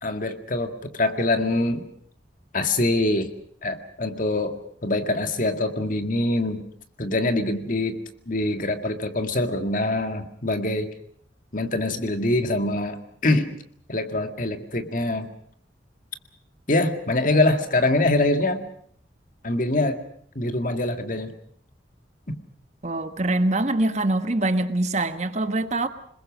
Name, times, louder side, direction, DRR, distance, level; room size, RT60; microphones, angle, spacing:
voice 1, 0.0-1.8 2.5-3.3 3.6-6.6 7.0-8.0 8.3-10.9 11.5-13.6 13.9-15.3 16.7-18.6 19.4-20.0 20.4-21.3 22.3-22.4, left 2 dB, 45° left, 7 dB, 2.0 m, -24 dB
voice 2, 22.8-25.9, right 2 dB, 40° right, 10 dB, 1.2 m, -24 dB
27.0 x 21.0 x 6.2 m, 0.65 s
head